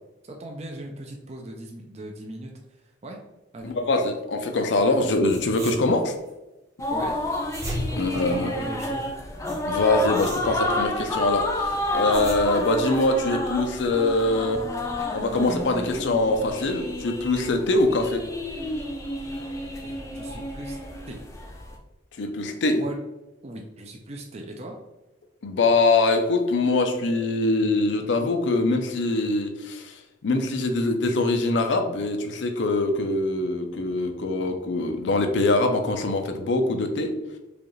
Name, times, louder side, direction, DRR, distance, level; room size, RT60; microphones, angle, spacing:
voice 1, 0.3-3.2 3.5-3.7 6.9-7.2 7.9-9.1 19.8-20.8 21.1-21.2 22.7-23.0 23.4-24.7, right 1 dB, 35° right, 1 dB, 0.5 m, -38 dB
voice 2, 3.6-6.1 8.0-8.6 9.7-14.7 15.1-18.2 22.2-22.8 25.4-37.2, left 2 dB, 75° left, 6 dB, 0.5 m, -23 dB
sound 1, 4.9-5.0 5.2-6.3 7.2-8.9 9.5-11.0 11.8-12.9, equal, 20° right, 0.8 m, -37 dB
sound 2, 6.8-21.8, left 1 dB, 15° left, 0.5 m, -30 dB
4.9 x 2.4 x 3.1 m, 1.0 s
head